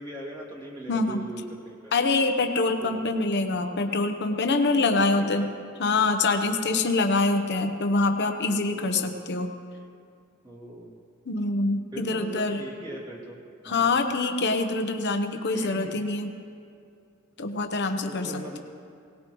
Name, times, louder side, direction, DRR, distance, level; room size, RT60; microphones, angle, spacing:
voice 1, 0.0-1.9 2.8-3.0 5.0-5.4 6.6-6.8 8.7-9.2 10.4-11.0 11.9-13.4 13.6-13.9 15.5-16.0 18.1-18.6, right 1 dB, 20° right, -5 dB, 2.3 m, -40 dB
voice 2, 0.9-1.2 1.9-5.5 5.8-9.5 11.3-12.6 13.6-16.3 17.4-18.6, left 3 dB, 55° left, 6 dB, 0.9 m, -25 dB
18.5 x 18.5 x 3.1 m, 2.4 s
head